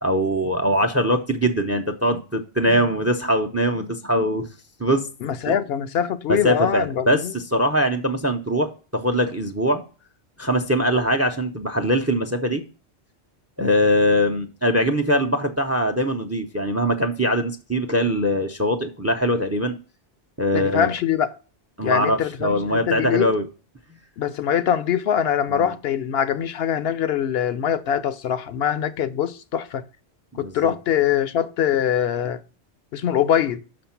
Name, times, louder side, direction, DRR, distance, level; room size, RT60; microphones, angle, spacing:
voice 1, 0.0-4.5 4.8-5.1 5.5-5.6 6.3-9.8 10.4-12.6 13.6-19.8 20.4-20.9 21.8-23.5 25.5-25.7 30.3-30.7, equal, 20° right, 0.4 m, -22 dB
voice 2, 5.2-7.3 20.5-21.3 21.8-23.3 24.2-29.8 30.4-32.4 32.9-33.6, left 9 dB, 70° left, 0.8 m, -23 dB
6.4 x 5.1 x 5.8 m
omnidirectional pair, 1.1 m